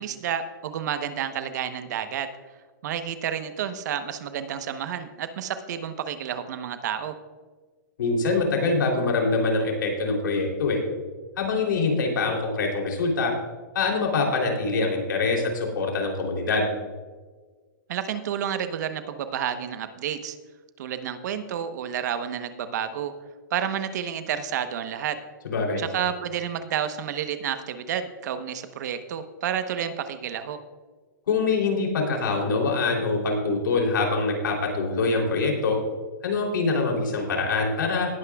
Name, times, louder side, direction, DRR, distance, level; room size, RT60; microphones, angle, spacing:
voice 1, 0.0-2.3 2.8-7.2 17.9-20.4 20.8-23.1 23.5-25.2 25.8-30.6, right 9 dB, 60° right, 9 dB, 1.0 m, -30 dB
voice 2, 8.0-10.8 11.4-13.3 13.7-16.7 25.4-25.8 31.3-35.8 36.2-38.2, left 3 dB, 85° left, 0 dB, 3.2 m, -24 dB
19.0 x 9.5 x 2.3 m, 1.4 s
hypercardioid pair, 150°, 10 cm